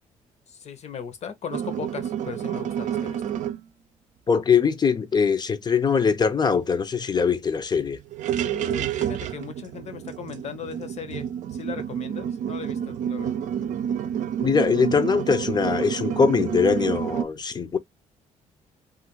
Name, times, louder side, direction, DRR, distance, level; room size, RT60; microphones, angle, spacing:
voice 1, 0.5-3.2 8.4-13.4, left 7 dB, 60° left, 0.9 m, -38 dB
sound 1, 1.5-3.6 6.2-6.3 6.6-6.8 7.2-7.3 8.0-17.2, right 9 dB, 70° right, 0.5 m, -29 dB
voice 2, 4.3-8.0 14.4-17.8, left 6 dB, 30° left, 0.6 m, -22 dB
2.9 x 2.5 x 2.9 m
supercardioid pair, 75°, 13 cm